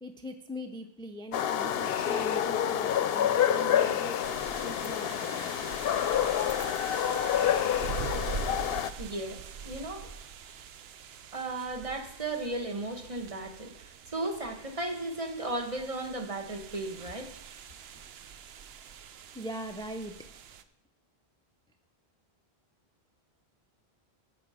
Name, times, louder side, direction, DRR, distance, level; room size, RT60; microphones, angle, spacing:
voice 1, 0.0-4.4 4.6-5.5 19.3-20.1, equal, 5° left, 6 dB, 0.4 m, -41 dB
sound 1, 1.3-8.9, left 10 dB, 70° left, 0.8 m, -28 dB
sound 2, 4.2-20.6, right 6 dB, 80° right, 0.9 m, -44 dB
voice 2, 9.0-10.1 11.3-17.3, right 2 dB, 35° right, 4 dB, 1.3 m, -35 dB
16.0 x 5.3 x 4.9 m, 0.78 s
omnidirectional pair, 1.0 m